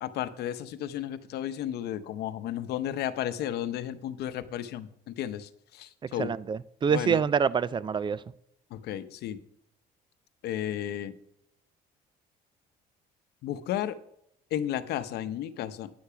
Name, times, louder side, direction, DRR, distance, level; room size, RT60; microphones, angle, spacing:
voice 1, 0.0-6.3 6.9-7.2 8.7-9.4 10.4-11.1 13.4-14.0 14.5-15.9, left 11 dB, 75° left, 11 dB, 0.8 m, -33 dB
voice 2, 6.2-8.2, right 6 dB, 30° right, 19 dB, 0.4 m, -26 dB
9.5 x 6.8 x 5.7 m, 0.76 s
cardioid pair, 110°, 17 cm